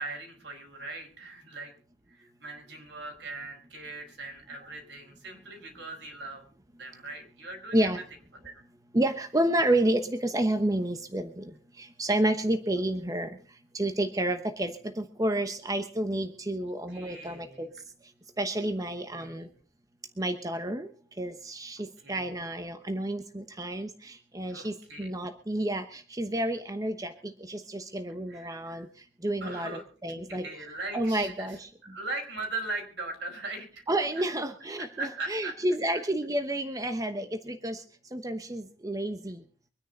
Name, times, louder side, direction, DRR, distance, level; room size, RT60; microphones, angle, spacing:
voice 1, 0.0-1.7 2.1-6.4 6.8-7.9 8.4-8.6 16.6-17.6 18.8-19.5 22.0-22.3 24.5-25.1 28.3-28.9 29.4-29.8 30.2-31.6 31.9-33.8 34.8-35.5 35.9-36.0, right 2 dB, 70° right, 3 dB, 5.0 m, -40 dB
voice 2, 8.9-11.4 11.8-13.4 13.7-17.7 18.4-19.5 20.2-20.9 21.2-28.9 29.2-30.4 30.9-31.7 33.9-37.8 38.1-39.4, right 1 dB, 20° right, 7 dB, 1.0 m, -30 dB
24.5 x 10.0 x 3.9 m, 0.40 s
head